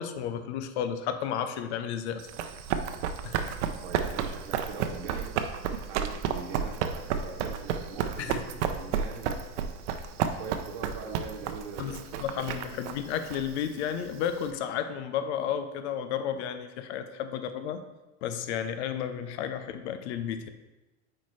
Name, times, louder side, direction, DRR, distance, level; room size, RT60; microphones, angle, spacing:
voice 1, 0.0-2.3 3.2-3.4 8.2-8.4 11.8-17.8 18.2-20.5, left 8 dB, 75° left, 8 dB, 0.7 m, -32 dB
Run, 2.2-14.5, right 8 dB, 85° right, 0.7 m, -32 dB
voice 2, 3.3-5.3 5.9-9.4 10.1-12.6, right 5 dB, 65° right, 0 dB, 1.1 m, -42 dB
8.2 x 4.4 x 3.2 m, 1.1 s
supercardioid pair, 155°, 34 cm